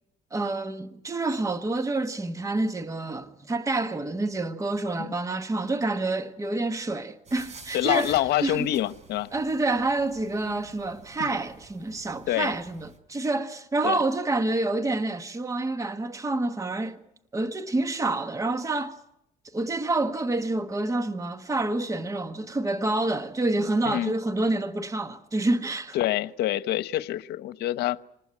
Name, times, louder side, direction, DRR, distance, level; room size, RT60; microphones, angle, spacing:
voice 1, 0.3-8.7 9.3-17.0 17.3-19.0 19.5-26.0, right 2 dB, 20° right, 1.4 m, -28 dB
sound 1, 7.3-13.0, right 4 dB, 40° right, 4.6 m, -50 dB
voice 2, 7.7-9.3 10.5-10.6 11.2-11.4 12.3-12.5 13.8-14.0 23.8-24.1 25.9-28.1, left 14 dB, 75° left, 1.0 m, -26 dB
27.5 x 20.0 x 9.7 m
cardioid pair, 110°, 17 cm